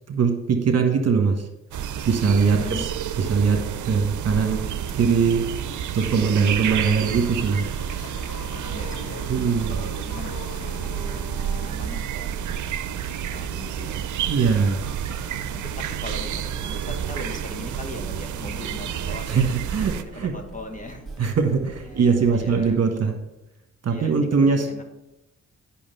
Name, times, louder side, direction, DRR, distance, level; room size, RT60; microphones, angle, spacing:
voice 1, 0.1-1.5 2.1-2.9 3.2-4.6 4.9-5.5 5.9-8.1 9.3-9.7 14.3-14.9 19.3-20.3 21.2-23.2 23.8-24.7, right 5 dB, 50° right, 4 dB, 1.4 m, -21 dB
sound 1, 1.7-20.0, right 9 dB, 70° right, 0.7 m, -30 dB
voice 2, 2.3-2.9 6.2-6.5 8.7-11.2 11.5-14.1 14.8-21.1 21.9-22.8 23.8-24.8, left 2 dB, 25° left, 3 dB, 1.5 m, -40 dB
Chatter, 4.8-22.7, right 3 dB, ahead, 1.8 m, -43 dB
sound 2, 6.0-11.7, left 6 dB, 75° left, 0.8 m, -42 dB
8.6 x 5.9 x 5.6 m, 0.93 s
cardioid pair, 70°, 32 cm